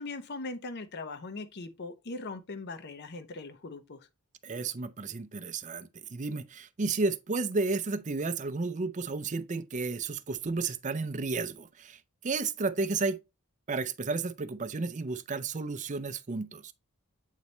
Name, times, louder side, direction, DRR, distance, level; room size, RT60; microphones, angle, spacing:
voice 1, 0.0-4.1, left 3 dB, 50° left, 0.6 m, -40 dB
voice 2, 4.4-12.0 12.2-13.2 13.7-16.7, right 3 dB, 35° right, 0.5 m, -32 dB
8.3 x 4.1 x 3.2 m
head